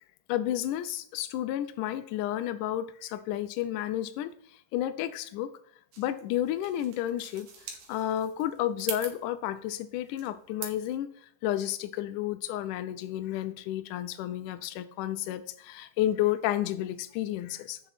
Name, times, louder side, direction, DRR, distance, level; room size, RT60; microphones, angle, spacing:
voice 1, 0.3-4.3 4.7-5.5 6.0-7.5 7.9-11.1 11.4-17.8, left 12 dB, 80° left, 12 dB, 2.0 m, -31 dB
sound 1, 5.9-10.9, right 6 dB, 75° right, 2.8 m, -43 dB
7.9 x 5.9 x 4.2 m, 0.66 s
omnidirectional pair, 4.1 m